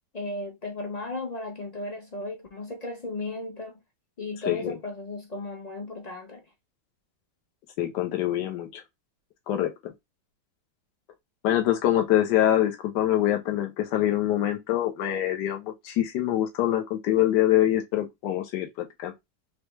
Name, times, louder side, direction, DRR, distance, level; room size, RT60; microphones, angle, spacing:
voice 1, 0.1-3.8 4.2-6.4, left 2 dB, 45° left, 0.5 m, -35 dB
voice 2, 4.4-4.8 7.8-8.8 9.5-9.9 11.4-19.1, left 12 dB, 80° left, 1.5 m, -25 dB
4.5 x 3.3 x 3.1 m
omnidirectional pair, 1.8 m